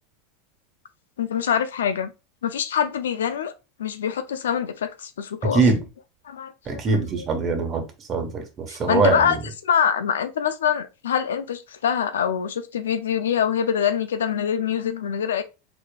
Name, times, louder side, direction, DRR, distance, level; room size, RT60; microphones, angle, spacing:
voice 1, 1.2-2.1 2.4-3.5 3.8-5.6 6.3-6.8 7.2-7.3 8.7-9.4 9.6-15.4, left 8 dB, 90° left, 0.4 m, -24 dB
voice 2, 6.7-7.8 8.1-9.4, right 4 dB, 35° right, 1.1 m, -22 dB
4.0 x 3.1 x 2.3 m
hypercardioid pair, 105°, 0 cm